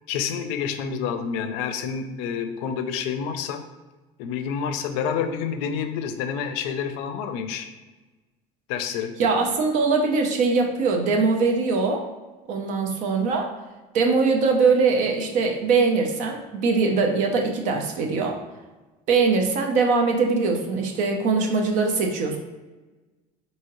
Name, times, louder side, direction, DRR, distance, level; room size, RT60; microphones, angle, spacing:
voice 1, 0.1-3.6 4.2-7.7 8.7-9.2, left 7 dB, 80° left, 8 dB, 0.5 m, -28 dB
voice 2, 9.2-12.0 12.5-13.5 13.9-18.4 19.1-22.4, right 4 dB, 50° right, 3 dB, 0.6 m, -22 dB
4.6 x 2.8 x 3.0 m, 1.2 s
cardioid pair, 170°, 16 cm